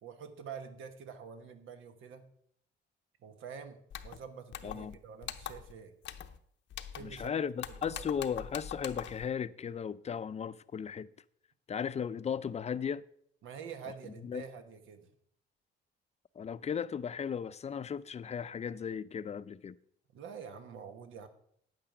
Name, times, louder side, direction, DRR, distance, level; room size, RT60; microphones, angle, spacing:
voice 1, 0.0-2.3 3.2-5.9 6.9-7.3 7.9-8.0 13.4-15.1 20.1-21.3, right 6 dB, 80° right, 1.2 m, -47 dB
sound 1, 3.9-4.2 4.5-4.9 5.2-5.7 6.0-6.4 6.7-7.3 7.6-9.3, left 9 dB, 70° left, 0.7 m, -43 dB
voice 2, 4.6-5.0 7.0-11.1 11.7-13.0 14.0-14.5 16.4-19.8, left 7 dB, 35° left, 0.5 m, -36 dB
9.4 x 8.7 x 5.0 m
cardioid pair, 90°, 20 cm